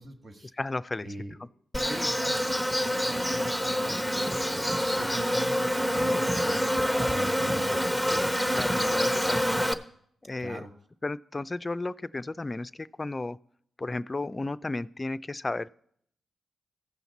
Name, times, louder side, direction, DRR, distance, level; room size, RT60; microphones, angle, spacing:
voice 1, 0.0-0.5 1.0-1.4 1.8-8.3 10.4-10.7, right 2 dB, 50° right, 5 dB, 1.6 m, -41 dB
voice 2, 0.6-1.1 8.6-9.5 10.2-10.7 11.0-13.4 13.8-15.7, left 2 dB, 30° left, 16 dB, 0.4 m, -33 dB
Insect, 1.7-9.7, equal, 5° right, 0.9 m, -27 dB
16.0 x 5.7 x 4.1 m, 0.67 s
supercardioid pair, 45°, 0 cm